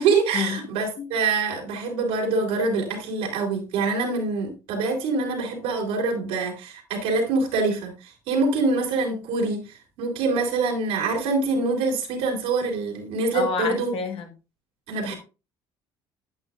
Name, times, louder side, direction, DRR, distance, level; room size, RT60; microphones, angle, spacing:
voice 1, 0.0-13.9 14.9-15.2, right 3 dB, 80° right, 3.3 m, -25 dB
voice 2, 13.3-14.3, left 5 dB, 65° left, 1.7 m, -28 dB
10.5 x 9.0 x 2.5 m
supercardioid pair, 70°, 10 cm